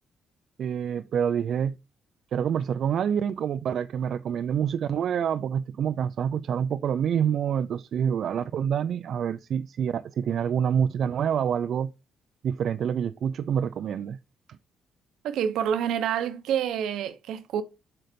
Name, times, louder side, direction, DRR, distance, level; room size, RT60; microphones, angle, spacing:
voice 1, 0.6-1.7 2.3-11.9 12.4-14.2, right 8 dB, 65° right, 0.4 m, -27 dB
voice 2, 15.2-17.6, right 9 dB, 85° right, 0.9 m, -27 dB
7.7 x 4.0 x 5.1 m
cardioid pair, 90°, 0 cm